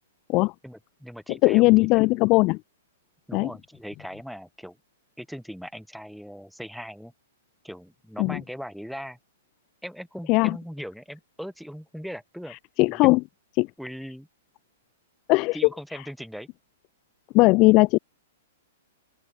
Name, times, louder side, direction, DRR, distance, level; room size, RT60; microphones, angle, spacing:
voice 1, 0.6-2.2 3.3-4.8 5.2-7.1 7.6-9.2 9.8-12.6 12.9-13.1 13.8-14.3 15.5-16.5, equal, ahead, 5.2 m, -39 dB
voice 2, 1.4-2.6 3.3-3.5 8.2-8.4 10.3-10.6 12.8-13.2 13.6-13.7 15.3-15.6 17.3-18.0, left 23 dB, 35° left, 0.6 m, -18 dB
open air
hypercardioid pair, 145°, 0 cm